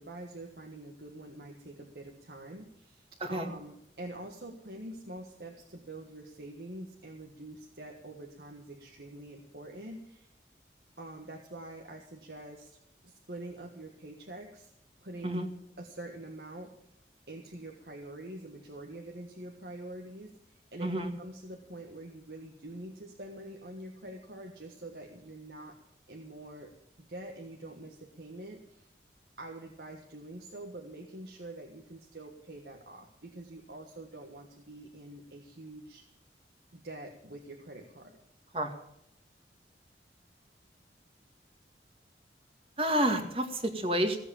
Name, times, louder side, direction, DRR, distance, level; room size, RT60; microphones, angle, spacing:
voice 1, 0.0-10.3 11.0-12.8 13.0-14.7 15.0-15.4 15.8-16.7 17.3-20.3 20.7-25.8 26.1-28.9 29.4-36.1 36.7-38.2, right 1 dB, 65° right, 1 dB, 1.7 m, -45 dB
voice 2, 3.2-3.5 15.2-15.5 20.8-21.1 38.5-38.7 42.8-44.2, right 1 dB, 30° right, 5 dB, 1.9 m, -29 dB
16.5 x 8.1 x 8.7 m, 0.75 s
head